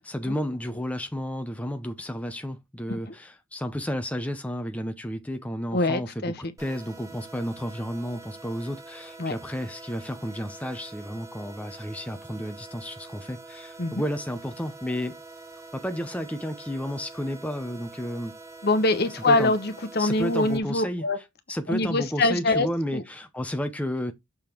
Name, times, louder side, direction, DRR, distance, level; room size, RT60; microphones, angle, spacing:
voice 1, 0.0-6.3 6.6-15.2 15.7-18.3 19.2-19.5 20.0-21.0 21.5-24.1, equal, 5° left, 0.6 m, -32 dB
voice 2, 5.7-6.3 9.2-9.4 13.8-14.0 18.6-21.2 21.7-23.0, left 2 dB, 45° left, 1.0 m, -24 dB
sound 1, 6.6-20.6, right 3 dB, 15° right, 0.9 m, -45 dB
6.7 x 3.7 x 4.5 m
head